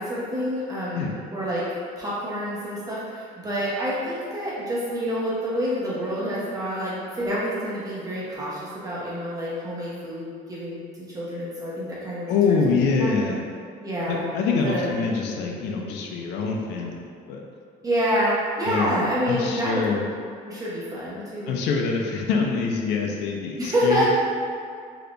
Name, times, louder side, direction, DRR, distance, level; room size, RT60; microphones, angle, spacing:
voice 1, 0.0-13.1 13.8-14.2 14.6-15.0 17.8-19.8 20.4-21.6 23.6-24.1, equal, 20° right, -8 dB, 1.0 m, -28 dB
voice 2, 12.3-13.4 14.1-17.4 18.7-20.0 21.5-24.0, left 4 dB, 85° left, 0 dB, 0.4 m, -25 dB
3.4 x 2.8 x 2.5 m, 2.2 s
cardioid pair, 110°, 17 cm